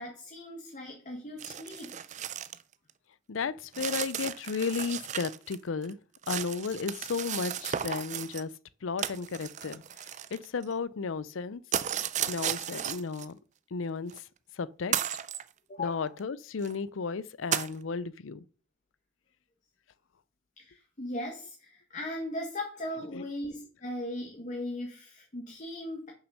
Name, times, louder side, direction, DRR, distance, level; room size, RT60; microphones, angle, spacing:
voice 1, 0.0-1.9 15.7-16.1 20.6-26.1, left 1 dB, 40° left, 1.5 m, -38 dB
sound 1, 1.4-2.6 2.9-3.0 3.7-5.6 5.8-8.4 9.0-10.7 11.7-13.2 14.1-14.2 14.9-15.4 16.2-16.3 16.6-16.7 17.5-17.7, right 9 dB, 40° right, 0.4 m, -34 dB
voice 2, 3.3-6.0 6.3-8.5 8.8-11.6 12.3-13.4 13.7-14.3 14.6-14.9 15.8-18.4 23.1-23.2, left 5 dB, 85° left, 0.5 m, -34 dB
6.6 x 5.9 x 5.5 m
head